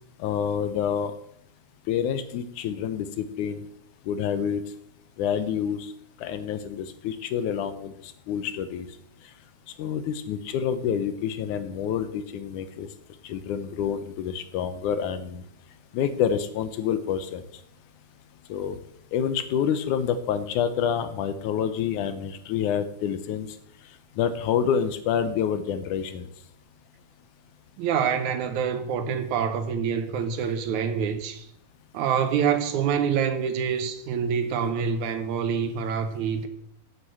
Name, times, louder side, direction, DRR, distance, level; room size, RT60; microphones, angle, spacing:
voice 1, 0.2-1.1 1.9-3.6 4.1-4.6 5.2-5.9 6.2-8.9 9.8-12.9 13.2-15.4 15.9-17.4 18.5-18.8 19.1-23.5 24.2-26.3, left 8 dB, 80° left, 2.3 m, -27 dB
voice 2, 27.8-31.5 31.9-36.5, right 7 dB, 75° right, 2.4 m, -26 dB
8.3 x 8.2 x 7.8 m
omnidirectional pair, 3.5 m